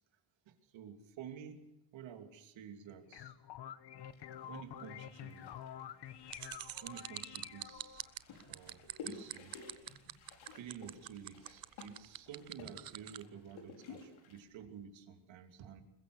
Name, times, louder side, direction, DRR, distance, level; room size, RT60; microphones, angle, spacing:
voice 1, 0.5-3.3 4.5-5.5 6.8-8.0 8.5-9.6 10.5-15.8, right 8 dB, 70° right, 6 dB, 2.9 m, -51 dB
sound 1, 2.9-8.1, left 10 dB, 55° left, 1.4 m, -49 dB
sound 2, 4.1-14.4, left 4 dB, 75° left, 5.8 m, -55 dB
sound 3, 6.3-13.2, right 12 dB, 45° right, 0.9 m, -44 dB
22.0 x 21.0 x 6.6 m, 0.89 s
cardioid pair, 125°, 48 cm